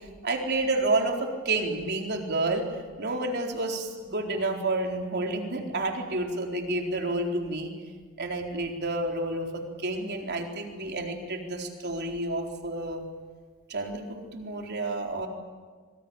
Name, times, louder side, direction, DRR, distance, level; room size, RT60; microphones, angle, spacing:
voice 1, 0.2-2.6 3.0-7.7 8.2-13.0 13.7-15.3, right 2 dB, 50° right, 2 dB, 4.2 m, -30 dB
26.0 x 24.5 x 8.9 m, 1.5 s
head